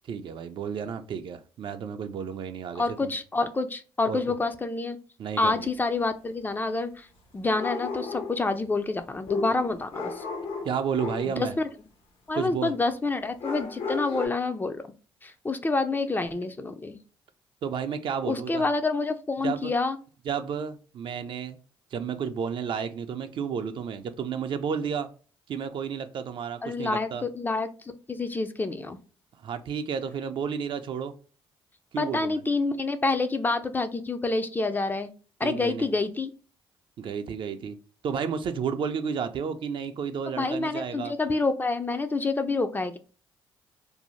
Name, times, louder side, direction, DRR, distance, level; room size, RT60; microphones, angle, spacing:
voice 1, 0.1-3.1 4.1-4.2 5.2-5.7 10.6-11.6 12.3-12.7 17.6-18.6 19.4-19.7 20.3-21.6 21.9-25.1 25.5-27.2 29.4-31.1 31.9-32.4 35.4-35.9 37.0-37.8 38.0-41.1, right 7 dB, 60° right, 8 dB, 0.4 m, -32 dB
voice 2, 2.7-5.0 5.4-7.1 7.3-10.2 11.3-11.7 12.3-14.8 15.2-17.0 18.2-20.0 26.6-29.0 32.0-35.1 35.4-36.3 40.3-43.0, left 3 dB, 20° left, 9 dB, 0.3 m, -28 dB
sound 1, 5.3-5.4 7.5-8.5 9.3-11.4 13.4-14.3, left 4 dB, 75° left, 0.8 m, -33 dB
2.6 x 2.0 x 3.0 m, 0.38 s
cardioid pair, 85°, 10 cm